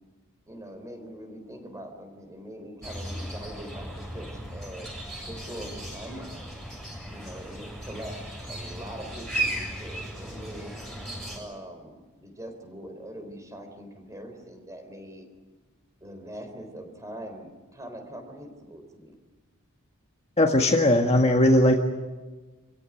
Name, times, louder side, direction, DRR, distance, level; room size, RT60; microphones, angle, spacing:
voice 1, 0.5-4.9 5.3-6.6 7.1-10.7 11.3-15.3 16.0-19.2, right 1 dB, 15° right, 6 dB, 3.9 m, -42 dB
sound 1, 2.8-11.4, right 1 dB, ahead, 7.6 m, -36 dB
voice 2, 20.4-21.8, left 1 dB, 30° left, 3 dB, 1.7 m, -19 dB
26.5 x 16.5 x 9.9 m, 1.3 s
head